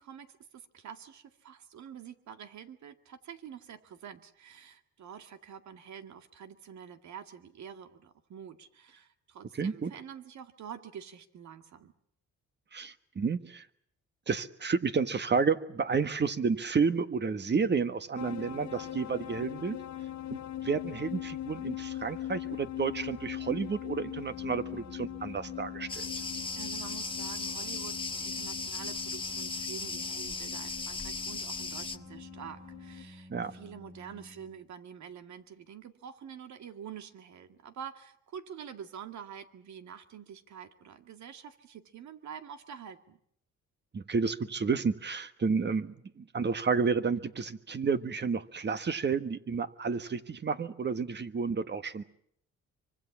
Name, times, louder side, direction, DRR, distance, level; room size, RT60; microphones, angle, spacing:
voice 1, 0.0-11.9 26.6-43.2, right 8 dB, 70° right, 8 dB, 2.2 m, -47 dB
voice 2, 9.6-9.9 12.7-13.6 14.3-19.8 20.3-26.0 33.3-33.5 43.9-52.0, right 5 dB, 35° right, 11 dB, 1.5 m, -31 dB
sound 1, 18.2-33.0, left 12 dB, 70° left, 1.7 m, -42 dB
Organ, 24.2-35.0, left 1 dB, ahead, 1.7 m, -51 dB
Cricket, 25.9-32.0, left 3 dB, 15° left, 1.4 m, -37 dB
25.0 x 24.5 x 7.3 m, 0.69 s
cardioid pair, 90°, 30 cm